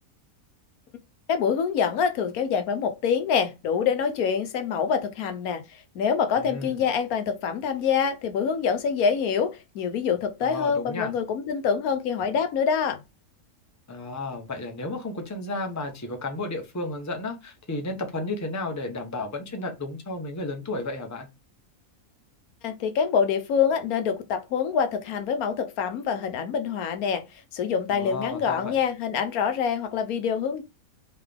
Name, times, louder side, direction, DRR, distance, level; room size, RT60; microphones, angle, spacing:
voice 1, 1.3-13.0 22.6-30.6, left 7 dB, 85° left, 1.2 m, -26 dB
voice 2, 6.4-6.8 10.4-11.1 13.9-21.3 27.9-28.8, left 2 dB, 15° left, 0.7 m, -33 dB
3.9 x 3.8 x 3.4 m
omnidirectional pair, 1.5 m